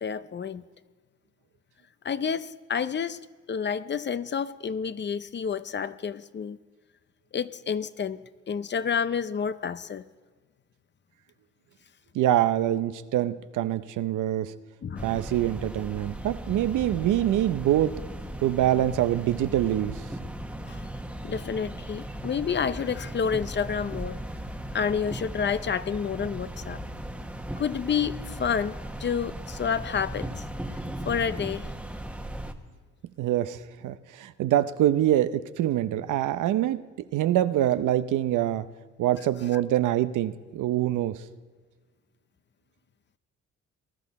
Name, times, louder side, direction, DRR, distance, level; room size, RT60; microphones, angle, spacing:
voice 1, 0.0-0.6 2.0-3.2 3.5-6.6 7.3-8.2 8.5-10.0 14.8-15.1 20.7-20.8 21.2-24.2 24.7-26.8 27.6-30.4 31.1-31.7 39.5-39.6, left 7 dB, 35° left, 15 dB, 0.6 m, -29 dB
voice 2, 12.1-14.5 15.0-18.0 18.4-20.0 33.2-33.6 33.8-36.8 37.1-38.7 39.0-41.2, right 12 dB, 80° right, 13 dB, 0.7 m, -25 dB
sound 1, 15.0-32.5, right 1 dB, 5° right, 1.2 m, -37 dB
20.0 x 12.0 x 4.2 m, 1.5 s
cardioid pair, 85°, 30 cm